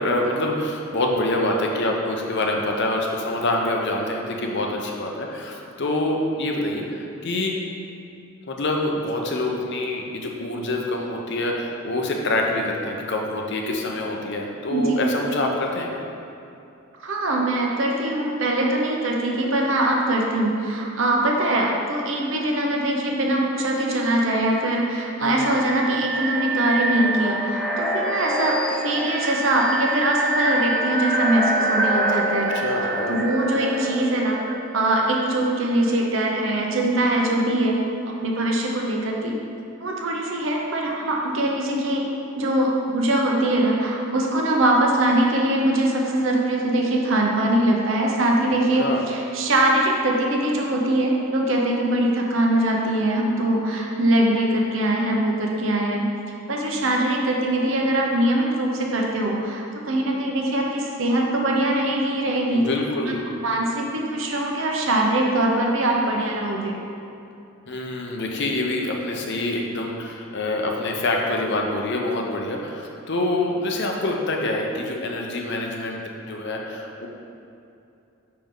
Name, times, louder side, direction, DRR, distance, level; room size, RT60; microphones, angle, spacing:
voice 1, 0.0-7.5 8.5-15.9 25.2-25.6 32.5-33.2 48.8-49.0 62.5-63.2 67.7-76.0 76.3-77.1, left 2 dB, 55° left, 1 dB, 0.7 m, -26 dB
voice 2, 14.7-15.0 17.0-32.5 33.1-34.4 34.7-37.8 38.2-39.4 39.8-42.1 42.4-56.0 56.5-62.7 63.1-63.2 63.4-66.8, right 1 dB, 60° right, -1 dB, 0.9 m, -22 dB
sound 1, 25.2-36.0, right 2 dB, 5° left, 0.4 m, -26 dB
5.8 x 5.3 x 3.8 m, 2.7 s
head